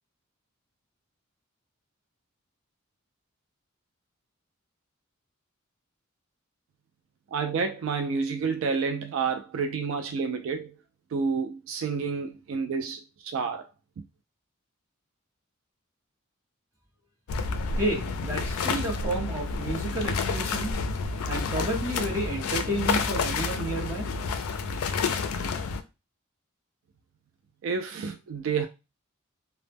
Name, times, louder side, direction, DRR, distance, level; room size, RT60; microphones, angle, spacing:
voice 1, 7.3-10.8 11.1-13.0 13.3-13.7 27.6-28.7, right 5 dB, 65° right, 0.3 m, -29 dB
sound 1, 17.3-25.8, left 4 dB, 85° left, 0.3 m, -29 dB
voice 2, 17.8-20.8 21.3-24.1, right 1 dB, 15° right, 0.8 m, -31 dB
2.1 x 2.0 x 3.3 m
head